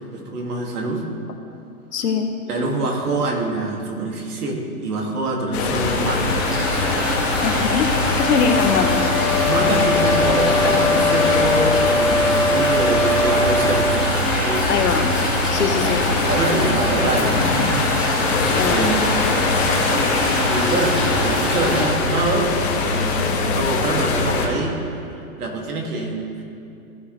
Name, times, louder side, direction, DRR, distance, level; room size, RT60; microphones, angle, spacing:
voice 1, 0.1-1.0 2.5-6.4 9.5-14.8 16.3-17.7 18.6-19.1 20.1-22.5 22.8-24.8 25.0-26.6, right 2 dB, 75° right, 0 dB, 2.5 m, -25 dB
voice 2, 1.9-2.3 7.4-9.4 14.7-15.2 15.5-16.1 18.5-18.8, left 5 dB, 85° left, 5 dB, 1.4 m, -22 dB
sound 1, 5.5-24.5, left 3 dB, 45° left, 1.7 m, -23 dB
sound 2, 5.7-21.8, equal, 5° right, 0.3 m, -24 dB
sound 3, 8.0-14.0, left 2 dB, 25° left, 1.4 m, -22 dB
16.5 x 6.3 x 3.3 m, 2.6 s
hypercardioid pair, 150°, 45 cm